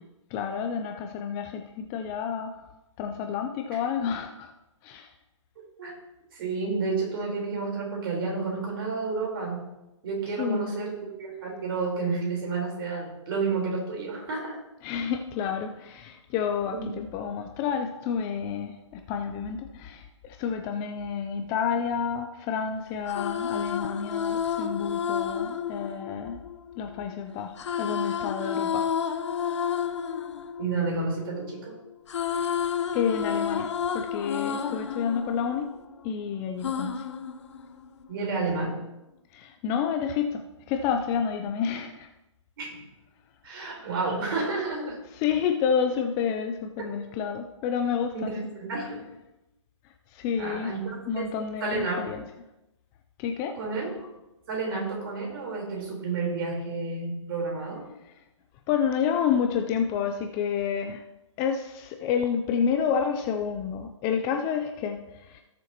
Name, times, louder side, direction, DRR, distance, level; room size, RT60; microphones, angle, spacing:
voice 1, 0.3-2.6 3.0-4.5 4.8-5.1 10.4-10.7 14.8-26.4 26.8-28.9 32.4-32.5 32.9-35.7 36.0-37.0 39.3-42.1 45.1-48.3 50.1-50.7 51.1-52.2 53.2-53.6 58.0-58.1 58.7-61.0 61.4-65.4, left 7 dB, 20° left, 5 dB, 0.5 m, -29 dB
voice 2, 6.3-9.7 10.0-14.6 16.7-16.9 30.6-31.8 38.1-38.8 42.6-42.8 43.4-45.0 48.1-49.0 50.4-51.2 51.6-52.0 53.6-53.9 54.5-57.8, right 4 dB, 45° right, -1 dB, 4.0 m, -30 dB
sound 1, 22.9-27.0 27.6-31.6 31.9-36.1 36.6-38.1, left 7 dB, 60° left, 0.9 m, -31 dB
17.5 x 6.9 x 2.9 m, 0.94 s
hypercardioid pair, 145°, 16 cm